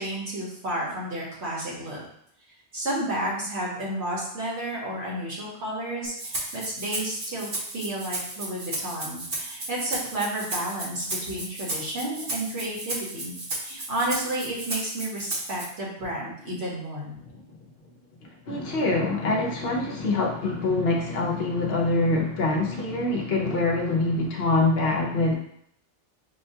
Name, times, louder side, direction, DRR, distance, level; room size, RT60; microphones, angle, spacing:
voice 1, 0.0-2.0 2.7-7.5 7.7-17.2, right 1 dB, 65° right, -4 dB, 1.4 m, -31 dB
Rattle (instrument), 6.0-15.6, right 2 dB, 50° right, 1.0 m, -34 dB
voice 2, 18.5-25.3, left 2 dB, 60° left, -1 dB, 0.8 m, -24 dB
5.1 x 2.2 x 2.7 m, 0.70 s
omnidirectional pair, 1.2 m